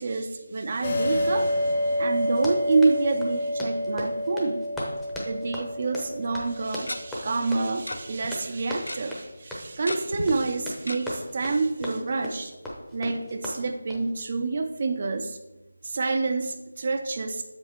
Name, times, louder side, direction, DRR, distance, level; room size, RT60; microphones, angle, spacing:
voice 1, 0.0-4.6 5.2-12.5 12.9-15.4 15.8-17.4, right 3 dB, 40° right, 6 dB, 0.5 m, -28 dB
sound 1, 0.8-8.0, left 1 dB, 30° left, 1.2 m, -29 dB
Run, 2.3-14.1, left 1 dB, 5° left, 0.8 m, -38 dB
Tick-tock, 6.0-6.1 6.9-7.0 7.9-8.3 8.6-9.0 9.9-10.3 10.9-11.0 11.4-11.5 11.8-11.9, left 1 dB, 80° left, 0.7 m, -33 dB
7.2 x 5.1 x 4.3 m, 1.0 s
figure-of-eight pair, 165°, 0 cm